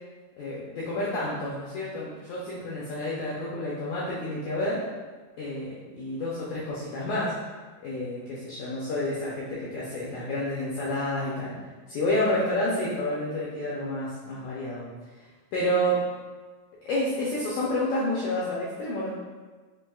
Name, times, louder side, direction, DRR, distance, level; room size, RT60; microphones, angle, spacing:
voice 1, 0.4-4.9 5.4-7.4 7.8-11.6 11.9-14.9 15.5-16.1 16.8-19.1, left 1 dB, 80° left, -7 dB, 1.7 m, -29 dB
6.0 x 2.6 x 2.3 m, 1.3 s
omnidirectional pair, 4.1 m